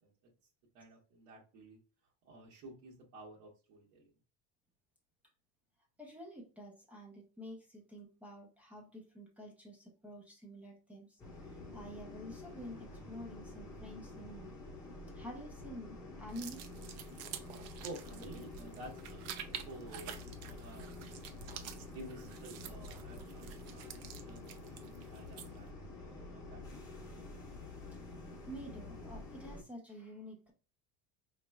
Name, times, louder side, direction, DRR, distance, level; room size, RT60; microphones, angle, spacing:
voice 1, 0.7-1.8 2.2-4.1 17.8-20.9 21.9-25.7 26.0-26.8, right 1 dB, 75° right, -2 dB, 1.3 m, -52 dB
voice 2, 6.0-14.6 15.1-16.6 28.5-30.5, equal, 5° right, -2 dB, 0.6 m, -49 dB
sound 1, 11.2-29.6, left 2 dB, 10° left, 1.0 m, -49 dB
sound 2, 16.3-25.7, right 9 dB, 50° right, 0.6 m, -49 dB
5.0 x 3.1 x 2.3 m, 0.34 s
cardioid pair, 180°, 31 cm